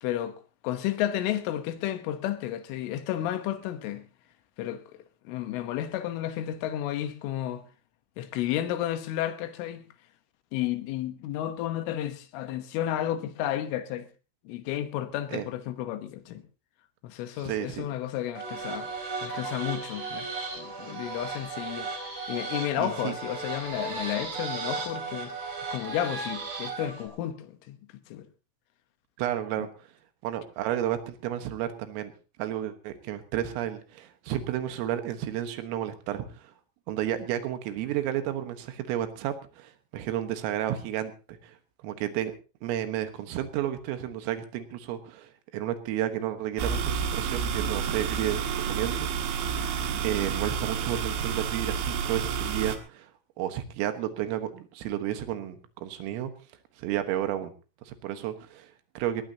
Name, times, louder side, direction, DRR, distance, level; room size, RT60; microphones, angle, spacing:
voice 1, 0.0-4.1 4.6-5.0 5.2-7.7 8.2-9.9 10.5-14.1 14.4-16.4 17.0-18.9 19.2-20.3 20.6-21.9 22.3-27.8 28.1-28.3 29.6-29.7, left 12 dB, 80° left, 3.6 m, -32 dB
voice 2, 17.4-17.9 22.8-23.1 29.2-29.7 30.2-32.1 32.4-36.5 36.9-41.1 41.4-41.6 41.8-42.3 42.6-49.1 49.4-49.7 50.0-53.1 53.4-56.3 56.8-57.5 57.9-59.2, right 11 dB, 85° right, 4.1 m, -32 dB
sound 1, 18.3-27.1, right 4 dB, 30° right, 4.7 m, -35 dB
sound 2, 46.6-52.8, right 7 dB, 70° right, 3.7 m, -30 dB
20.5 x 18.5 x 2.9 m
omnidirectional pair, 5.8 m